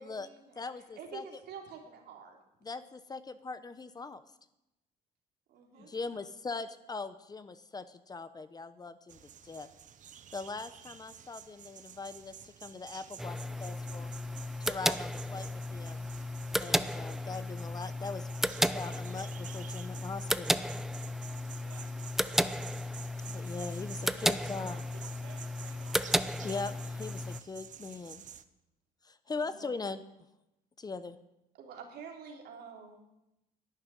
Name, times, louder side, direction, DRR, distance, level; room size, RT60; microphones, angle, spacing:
voice 1, 0.0-0.5 1.0-2.4 5.5-5.9 29.4-29.7 31.6-33.0, right 6 dB, 75° right, 1 dB, 3.4 m, -47 dB
voice 2, 0.6-1.4 2.6-4.2 5.8-9.7 10.3-14.1 14.6-16.1 16.6-18.3 18.7-20.6 23.3-24.8 26.4-28.2 29.0-30.0 30.8-31.2, left 4 dB, 25° left, 12 dB, 0.9 m, -41 dB
voice 3, 5.7-6.2 21.6-21.9 24.1-26.0, right 7 dB, 90° right, 1 dB, 2.4 m, -57 dB
sound 1, 9.1-28.4, right 9 dB, 50° right, 0.9 m, -51 dB
sound 2, 13.2-27.4, equal, ahead, 0.5 m, -34 dB
11.5 x 9.8 x 9.8 m, 0.90 s
cardioid pair, 110°, 17 cm